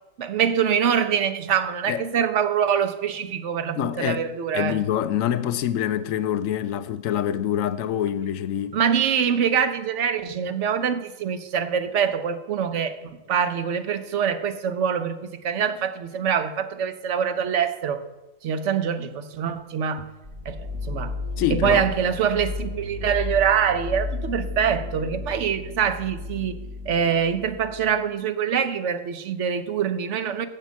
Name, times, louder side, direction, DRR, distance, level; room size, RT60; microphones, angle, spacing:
voice 1, 0.2-4.8 8.7-13.0 13.3-18.0 18.4-20.1 20.5-21.1 21.5-26.5 26.9-30.5, right 7 dB, 65° right, 1.0 m, -24 dB
voice 2, 3.8-8.8 21.4-21.9, left 10 dB, 90° left, 1.0 m, -26 dB
sound 1, 20.2-28.0, left 3 dB, 50° right, 3.4 m, -33 dB
7.6 x 7.5 x 7.3 m
omnidirectional pair, 1.4 m